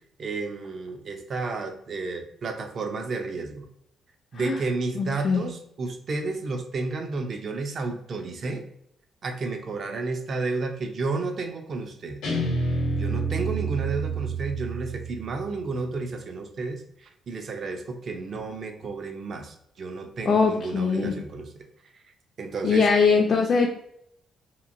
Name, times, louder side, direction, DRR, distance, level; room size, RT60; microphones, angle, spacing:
voice 1, 0.2-3.7 4.3-8.7 9.2-12.2 13.0-21.5 22.4-22.9, right 3 dB, 50° right, 5 dB, 0.4 m, -32 dB
voice 2, 5.0-5.5 20.3-21.2 22.6-23.7, left 5 dB, 50° left, 1 dB, 0.4 m, -21 dB
Guitar, 12.2-15.4, right 3 dB, 80° left, 0.8 m, -28 dB
2.8 x 2.4 x 2.5 m, 0.74 s
cardioid pair, 90°, 0 cm